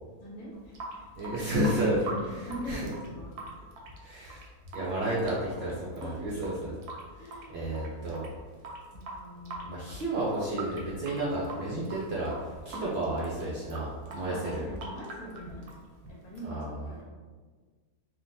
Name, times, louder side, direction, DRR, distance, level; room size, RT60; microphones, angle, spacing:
voice 1, 0.2-3.4 4.6-4.7 6.0-6.5 7.2-7.8 8.9-9.9 14.1-15.8 16.1-16.6 16.8-17.0, equal, 80° left, -5 dB, 1.4 m, -43 dB
Water tap faucet / Sink (filling or washing) / Drip, 0.5-16.5, right 2 dB, 85° right, 1.1 m, -43 dB
voice 2, 1.2-2.0 2.7-2.9 4.0-4.4 4.7-6.7 7.2-8.2 9.6-13.9 14.1-14.6 16.4-16.7, right 1 dB, 65° right, -6 dB, 0.6 m, -31 dB
3.6 x 2.3 x 2.6 m, 1.5 s
omnidirectional pair, 1.6 m